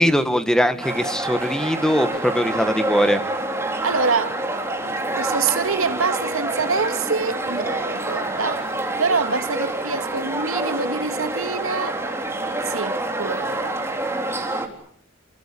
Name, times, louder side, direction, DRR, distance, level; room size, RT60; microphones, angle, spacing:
voice 1, 0.0-3.2, equal, 5° left, 1.7 m, -20 dB
sound 1, 0.8-14.7, right 2 dB, 10° right, 3.9 m, -27 dB
voice 2, 3.8-4.4 4.8-8.7 9.0-12.0 12.6-13.8, right 4 dB, 90° right, 2.2 m, -25 dB
29.0 x 22.5 x 8.6 m
head